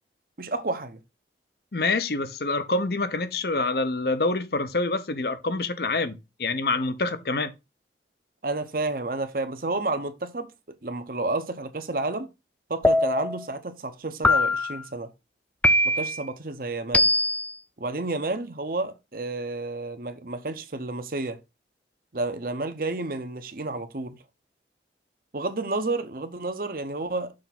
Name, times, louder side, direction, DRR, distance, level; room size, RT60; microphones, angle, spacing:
voice 1, 0.4-1.0 8.4-12.3 12.7-15.1 15.8-17.1 17.8-21.4 22.1-24.2 25.3-27.3, right 2 dB, 50° right, 0.8 m, -30 dB
voice 2, 1.7-7.5, left 3 dB, 60° left, 0.8 m, -26 dB
sound 1, 12.8-13.4 14.2-14.8 15.6-16.2 16.9-17.5, left 1 dB, 10° left, 0.3 m, -21 dB
6.5 x 3.5 x 5.8 m
head